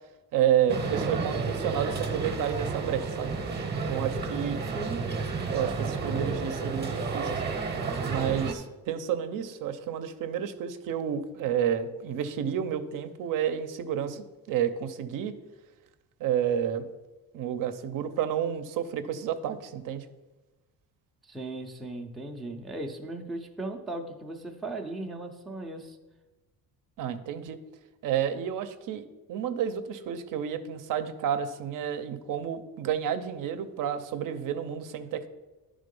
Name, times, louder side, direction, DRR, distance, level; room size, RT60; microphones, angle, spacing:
voice 1, 0.3-3.3 3.9-4.6 5.5-7.4 8.1-15.4 16.2-16.9 17.3-20.1 27.0-27.6 28.0-35.3, right 9 dB, 65° right, 10 dB, 0.6 m, -30 dB
sound 1, 0.7-8.5, right 4 dB, 30° right, 0.8 m, -31 dB
voice 2, 4.3-5.0 21.2-26.0, right 2 dB, ahead, 1 dB, 0.4 m, -37 dB
10.5 x 3.7 x 5.3 m, 1.2 s
cardioid pair, 160°, 35 cm